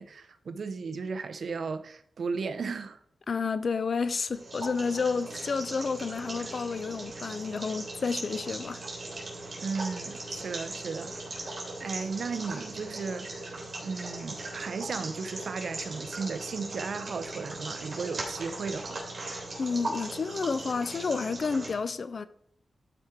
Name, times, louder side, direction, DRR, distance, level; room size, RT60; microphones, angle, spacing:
voice 1, 0.0-3.0 9.6-19.0, right 5 dB, 60° right, 0.6 m, -35 dB
voice 2, 3.3-8.8 19.6-22.3, left 5 dB, 50° left, 0.5 m, -30 dB
sound 1, 4.3-21.7, right 2 dB, 40° right, 3.2 m, -39 dB
12.0 x 4.9 x 4.5 m
wide cardioid pair, 140°, 0 cm